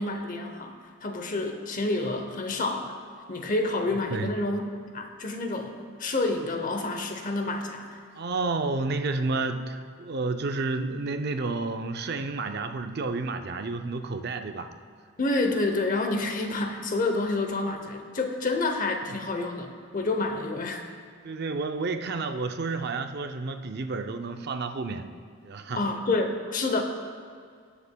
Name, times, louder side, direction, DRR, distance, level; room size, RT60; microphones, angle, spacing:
voice 1, 0.0-3.0 3.3-4.6 4.9-8.0 15.2-20.8 25.8-26.8, left 2 dB, 35° left, 5 dB, 0.7 m, -28 dB
voice 2, 8.2-14.7 21.2-25.1 25.4-25.8, right 3 dB, 50° right, 7 dB, 0.5 m, -30 dB
19.0 x 6.9 x 2.2 m, 2.1 s
head